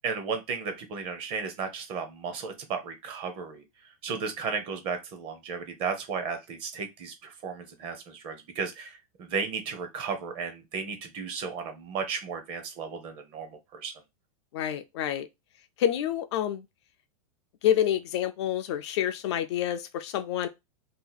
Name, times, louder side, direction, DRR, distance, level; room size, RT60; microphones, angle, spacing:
voice 1, 0.0-3.6 4.0-13.9, right 5 dB, 30° right, 0.7 m, -34 dB
voice 2, 14.5-15.3 15.8-16.6 17.6-20.5, left 11 dB, 50° left, 0.4 m, -28 dB
2.8 x 2.3 x 3.9 m
supercardioid pair, 160°, 19 cm